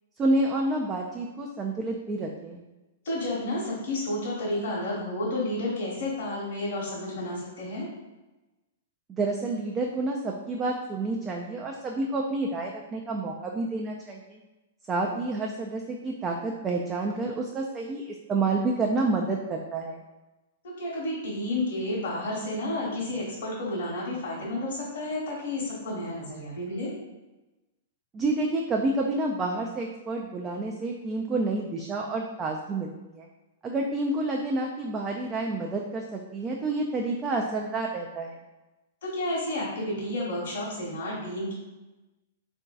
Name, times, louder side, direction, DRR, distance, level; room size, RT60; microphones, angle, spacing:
voice 1, 0.2-2.6 9.1-14.4 14.9-20.0 28.1-33.3 33.6-38.4, right 2 dB, 20° right, 0 dB, 0.3 m, -29 dB
voice 2, 3.0-7.9 20.6-26.9 39.0-41.5, left 1 dB, 60° left, -5 dB, 1.0 m, -31 dB
3.7 x 2.5 x 2.3 m, 1.1 s
hypercardioid pair, 110°, 0 cm